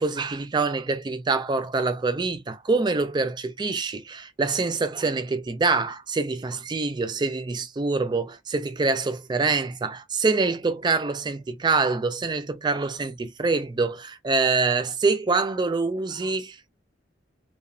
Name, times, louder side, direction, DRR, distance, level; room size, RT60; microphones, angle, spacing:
voice 1, 0.0-16.7, right 3 dB, 20° right, 0.3 m, -25 dB
2.9 x 2.2 x 2.4 m
head